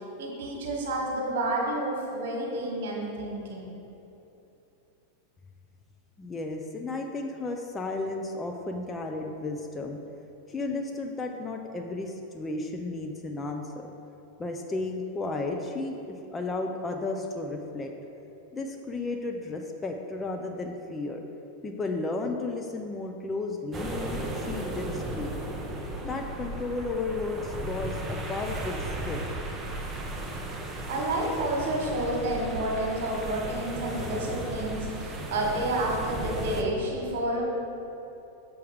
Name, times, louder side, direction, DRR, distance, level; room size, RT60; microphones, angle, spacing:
voice 1, 0.2-3.7 30.9-37.4, right 1 dB, 55° right, -1 dB, 1.5 m, -30 dB
voice 2, 6.2-10.0 10.5-13.9 14.4-17.9 18.5-21.2 21.6-25.3 26.0-29.3, left 3 dB, 15° left, 3 dB, 0.5 m, -33 dB
sound 1, 23.7-36.6, right 1 dB, 15° right, 0.8 m, -35 dB
7.0 x 4.6 x 4.8 m, 3.0 s
figure-of-eight pair, 90°, 0 cm